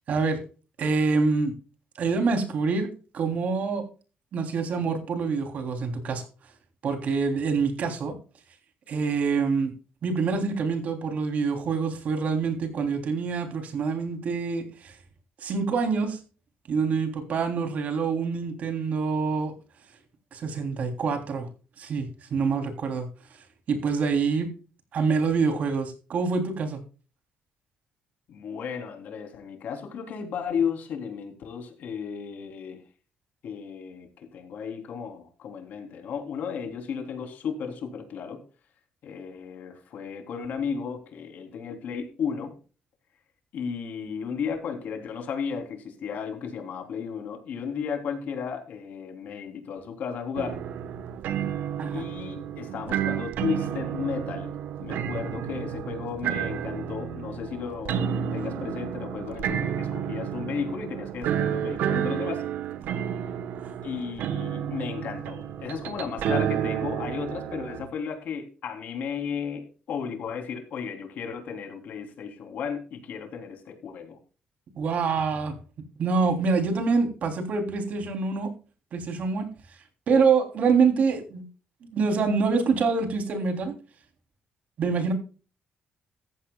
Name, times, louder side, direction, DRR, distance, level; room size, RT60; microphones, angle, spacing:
voice 1, 0.1-0.4 0.8-1.5 2.0-2.9 3.1-3.8 4.3-6.3 6.8-8.1 8.9-9.7 10.0-15.0 15.4-16.2 16.7-19.5 20.3-21.5 21.8-24.5 24.9-26.8 51.8-52.0 63.6-63.7 74.8-75.5 76.0-78.5 78.9-79.8 80.1-81.5 81.9-83.7 84.8-85.1, right 5 dB, 55° right, 5 dB, 3.3 m, -26 dB
voice 2, 28.3-32.8 33.4-38.4 39.0-42.5 43.5-50.6 51.9-54.5 54.8-62.4 63.8-74.2, left 6 dB, 65° left, 4 dB, 3.4 m, -34 dB
sound 1, 50.3-67.9, right 9 dB, 80° right, 1.2 m, -31 dB
15.0 x 14.5 x 2.3 m, 0.35 s
cardioid pair, 145°, 3 cm